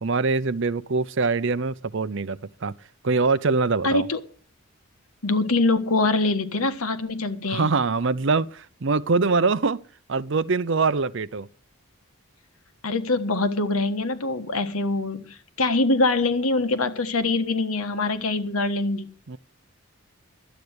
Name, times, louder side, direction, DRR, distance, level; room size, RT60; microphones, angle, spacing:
voice 1, 0.0-2.7 3.0-4.1 7.5-9.8 10.1-11.5 19.3-19.4, right 4 dB, 55° right, 0.6 m, -23 dB
voice 2, 3.8-4.2 5.2-7.7 12.8-19.1, left 2 dB, 80° left, 1.4 m, -24 dB
12.5 x 8.7 x 7.9 m
head